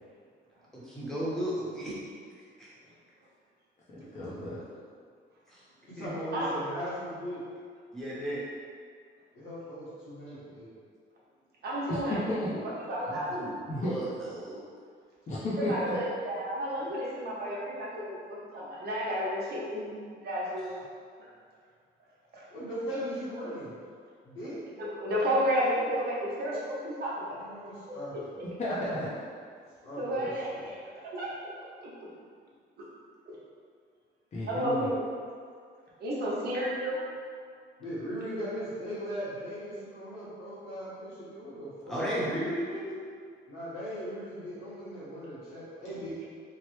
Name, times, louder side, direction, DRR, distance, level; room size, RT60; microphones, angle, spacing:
voice 1, 0.7-1.9 2.6-2.7 5.5-5.6 6.0-6.1 7.9-8.4 13.1-14.6 20.6-20.7 41.9-43.0 45.8-46.0, equal, ahead, -9 dB, 1.0 m, -34 dB
voice 2, 4.0-4.6 11.9-12.6 13.1-13.3 13.7-14.0 15.3-16.0 28.6-29.1 34.3-34.9, left 1 dB, 35° left, -9 dB, 0.6 m, -33 dB
voice 3, 5.8-7.4 9.3-10.7 22.5-23.7 24.2-24.6 27.3-28.3 29.8-30.7 37.8-42.1 43.5-46.2, equal, 85° left, -10 dB, 1.2 m, -38 dB
voice 4, 11.6-12.2 12.9-13.3 15.6-19.9 20.2-20.7 22.3-22.4 24.8-27.4 27.9-28.0 30.0-30.8 31.0-31.5 31.8-31.9 34.5-35.1 36.0-37.0, equal, 55° right, -6 dB, 0.8 m, -31 dB
3.1 x 2.0 x 3.0 m, 2.1 s
cardioid pair, 90°, 20 cm